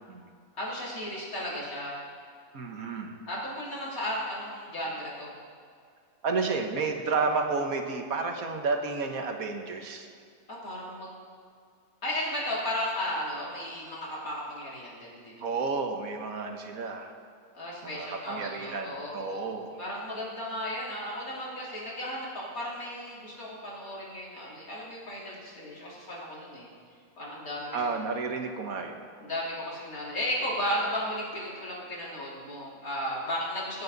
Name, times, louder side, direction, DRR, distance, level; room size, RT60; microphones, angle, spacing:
voice 1, 0.6-2.0 3.3-5.3 10.5-11.1 12.0-15.5 17.5-19.4 19.8-26.7 27.2-28.0 29.2-33.8, equal, 85° left, -6 dB, 3.6 m, -35 dB
voice 2, 2.5-3.1 6.2-10.1 15.4-17.1 17.8-19.8 27.7-29.0, right 4 dB, 85° right, 4 dB, 1.6 m, -31 dB
23.5 x 7.9 x 4.0 m, 2.2 s
omnidirectional pair, 1.5 m